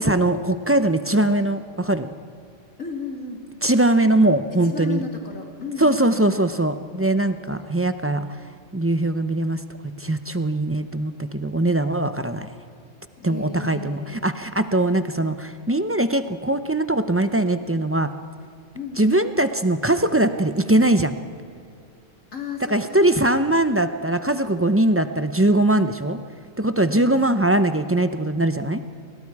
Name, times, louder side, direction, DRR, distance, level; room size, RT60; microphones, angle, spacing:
voice 1, 0.0-2.1 3.6-5.0 5.8-8.4 8.7-12.5 13.2-18.1 19.0-21.2 22.7-26.2 26.6-28.8, right 1 dB, 15° right, 10 dB, 0.5 m, -21 dB
voice 2, 2.8-3.5 4.6-6.3 7.3-7.6 13.2-14.3 18.7-19.1 22.3-23.0 26.9-27.4, left 5 dB, 85° left, 1 dB, 3.2 m, -34 dB
30.0 x 21.0 x 4.8 m, 2.5 s
omnidirectional pair, 1.3 m